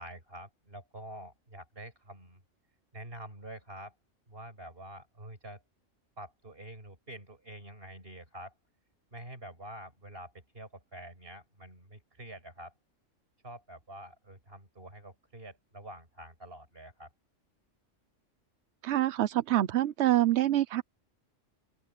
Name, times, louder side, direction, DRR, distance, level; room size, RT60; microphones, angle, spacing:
voice 1, 0.0-2.4 2.9-3.9 4.3-5.6 6.2-8.5 9.1-12.7 13.4-17.1, right 1 dB, 45° right, 6.1 m, -47 dB
voice 2, 18.8-20.8, right 13 dB, 65° right, 0.9 m, -26 dB
open air
omnidirectional pair, 1.3 m